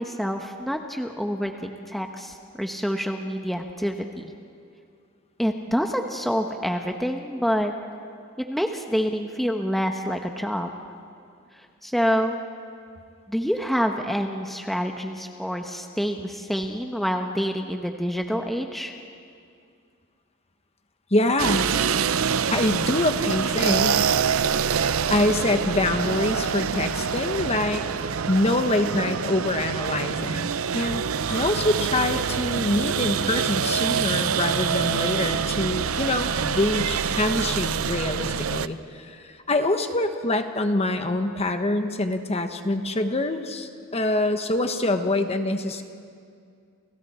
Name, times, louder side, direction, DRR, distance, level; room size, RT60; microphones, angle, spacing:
voice 1, 0.0-4.3 5.4-7.7 8.4-10.7 11.5-12.4 13.3-18.9, equal, ahead, 3 dB, 1.0 m, -27 dB
voice 2, 21.1-21.7 22.5-24.1 25.1-27.9 28.3-45.8, left 2 dB, 30° left, 7 dB, 1.3 m, -25 dB
sound 1, 21.4-38.7, right 7 dB, 75° right, 0.6 m, -25 dB
30.0 x 29.5 x 4.4 m, 2.3 s
head